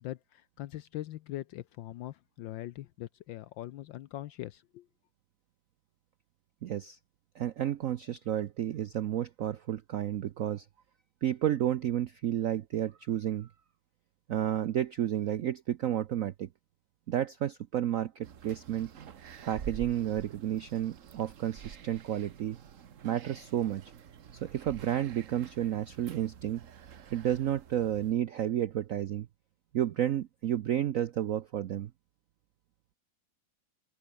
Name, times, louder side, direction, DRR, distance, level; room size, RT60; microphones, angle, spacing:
voice 1, 0.0-4.9, left 14 dB, 75° left, 1.3 m, -41 dB
voice 2, 6.6-7.0 7.4-10.7 11.2-13.5 14.3-16.5 17.1-18.9 19.4-22.6 23.0-23.8 24.3-26.6 27.1-29.3 29.7-31.9, right 11 dB, 75° right, 0.7 m, -31 dB
sound 1, 18.2-28.1, right 8 dB, 45° right, 1.2 m, -48 dB
open air
omnidirectional pair, 2.2 m